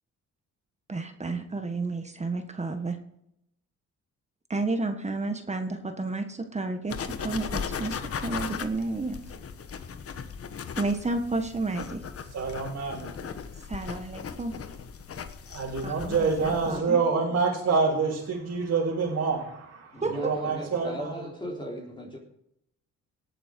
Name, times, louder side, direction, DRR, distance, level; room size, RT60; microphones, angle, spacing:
voice 1, 0.9-3.0 4.5-7.0 7.2-9.2 10.8-12.0 13.7-14.5 15.8-17.0 20.0-20.4, right 3 dB, 20° right, 6 dB, 1.6 m, -31 dB
sound 1, 6.9-16.8, left 6 dB, 50° left, 1.4 m, -37 dB
voice 2, 12.3-13.1 15.5-21.1, right 4 dB, 60° right, -5 dB, 3.8 m, -27 dB
voice 3, 19.9-22.2, equal, 15° left, -1 dB, 3.4 m, -38 dB
18.5 x 9.1 x 4.7 m, 0.76 s
cardioid pair, 90°, 30 cm